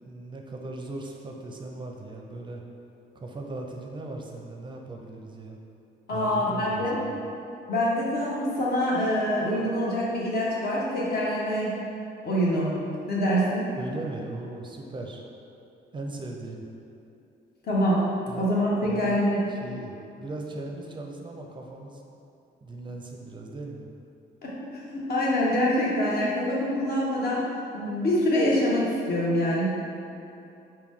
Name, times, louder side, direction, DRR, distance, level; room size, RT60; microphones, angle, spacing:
voice 1, 0.0-2.6 3.1-5.6 6.1-7.2 13.7-15.2 15.9-16.7 18.3-18.5 18.8-22.0 22.6-23.9, right 2 dB, 25° right, 1 dB, 0.5 m, -38 dB
voice 2, 6.1-7.0 7.7-11.7 12.2-12.7 13.1-13.7 17.6-18.0 18.4-19.4 24.4-24.5 24.9-27.4 27.7-29.7, equal, 50° left, -5 dB, 1.1 m, -25 dB
4.8 x 2.2 x 3.6 m, 2.8 s
cardioid pair, 90°, 20 cm